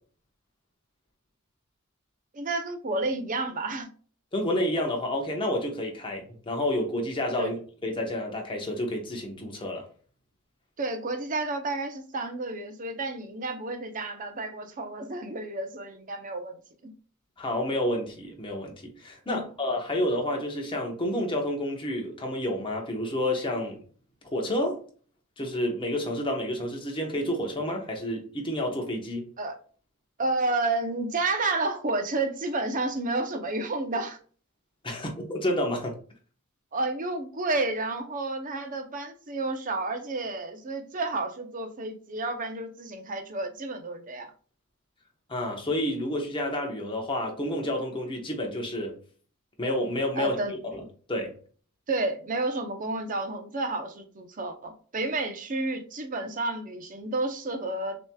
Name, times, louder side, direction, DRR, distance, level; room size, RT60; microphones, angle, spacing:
voice 1, 2.3-3.9 7.4-7.5 10.8-16.9 19.3-19.4 29.4-29.5 30.2-34.2 36.7-44.3 50.1-50.5 51.9-58.0, right 2 dB, 40° right, 0.7 m, -31 dB
voice 2, 4.3-7.6 7.8-9.9 17.4-23.8 24.3-24.8 25.4-29.2 34.8-35.9 45.3-49.0 49.6-50.4 50.7-50.8 51.1-51.4, left 1 dB, 25° left, 1.0 m, -29 dB
6.5 x 3.0 x 2.3 m
head